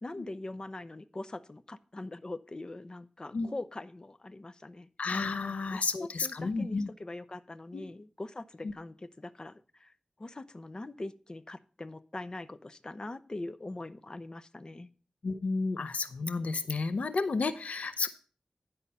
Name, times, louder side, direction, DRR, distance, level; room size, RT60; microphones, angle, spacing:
voice 1, 0.0-4.9 5.4-9.9 10.2-14.9, left 2 dB, 35° left, 13 dB, 0.6 m, -42 dB
voice 2, 5.0-6.9 7.7-7.9 15.2-18.1, left 4 dB, 90° left, 13 dB, 0.6 m, -31 dB
10.5 x 5.5 x 5.4 m, 0.38 s
wide cardioid pair, 85°, 2 cm